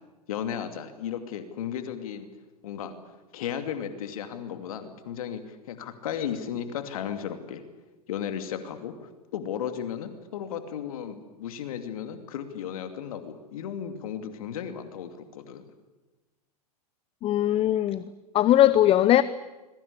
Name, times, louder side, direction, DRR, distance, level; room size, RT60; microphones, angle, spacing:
voice 1, 0.3-2.3 2.6-2.9 3.3-7.6 8.1-15.6, left 8 dB, 60° left, 8 dB, 2.6 m, -35 dB
voice 2, 17.2-18.0 18.3-19.2, left 13 dB, 30° left, 16 dB, 0.8 m, -20 dB
27.0 x 22.0 x 8.5 m, 1.2 s
figure-of-eight pair, 95°, 20 cm